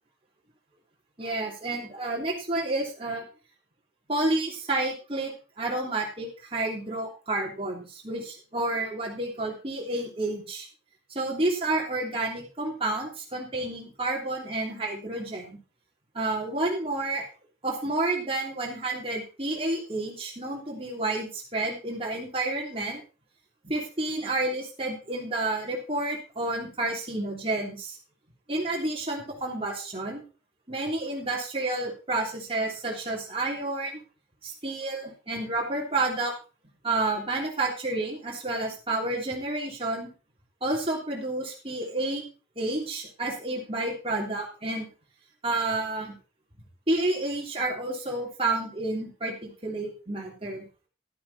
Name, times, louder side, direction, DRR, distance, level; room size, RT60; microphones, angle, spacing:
voice 1, 1.2-3.2 4.1-10.7 11.1-15.6 16.1-17.2 17.6-23.0 23.6-28.0 28.5-30.2 30.7-34.0 34.4-36.3 36.8-40.1 40.6-42.2 42.5-44.9 45.4-46.1 46.9-50.6, right 2 dB, 35° right, -2 dB, 3.2 m, -30 dB
12.0 x 8.6 x 4.1 m, 0.33 s
head